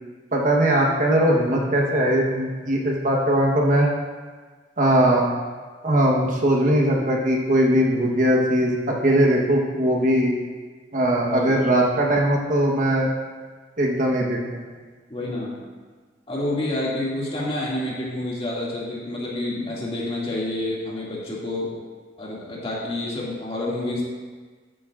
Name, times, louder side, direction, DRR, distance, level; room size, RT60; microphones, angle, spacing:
voice 1, 0.3-3.9 4.8-5.3 5.8-10.3 10.9-13.1 13.8-14.4, right 1 dB, 50° right, -1 dB, 1.2 m, -20 dB
voice 2, 11.3-11.7 15.1-15.6 16.3-21.7 22.2-24.1, left 1 dB, 35° left, -6 dB, 2.3 m, -28 dB
13.0 x 8.5 x 2.5 m, 1.5 s
head